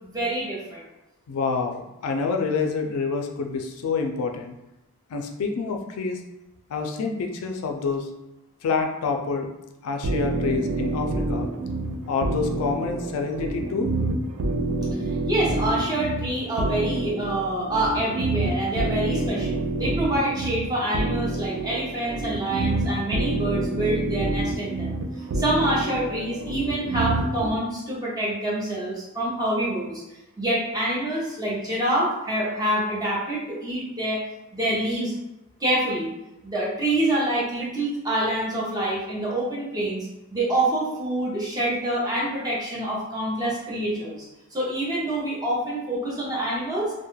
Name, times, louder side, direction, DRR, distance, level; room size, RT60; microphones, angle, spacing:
voice 1, 0.0-0.8 15.3-24.9 25.3-30.0 30.4-34.2 34.5-35.1 35.6-36.1 36.4-44.2 44.5-47.1, right 1 dB, 15° right, -6 dB, 0.6 m, -26 dB
voice 2, 1.3-4.5 5.1-6.2 6.7-8.1 8.6-9.5 9.8-11.5 12.1-13.9, left 4 dB, 80° left, 3 dB, 0.3 m, -27 dB
sound 1, 10.0-27.5, right 2 dB, 65° right, 0.3 m, -28 dB
2.2 x 2.1 x 3.0 m, 0.94 s
head